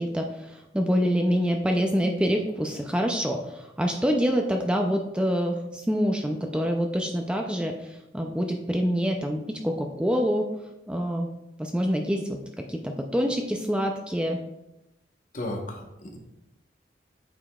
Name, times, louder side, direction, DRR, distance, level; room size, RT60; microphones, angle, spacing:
voice 1, 0.0-10.5 10.9-11.3 11.6-14.4, equal, 5° right, 3 dB, 0.4 m, -26 dB
voice 2, 15.3-16.2, left 1 dB, 45° left, 1 dB, 1.0 m, -34 dB
8.8 x 4.9 x 2.3 m, 0.90 s
head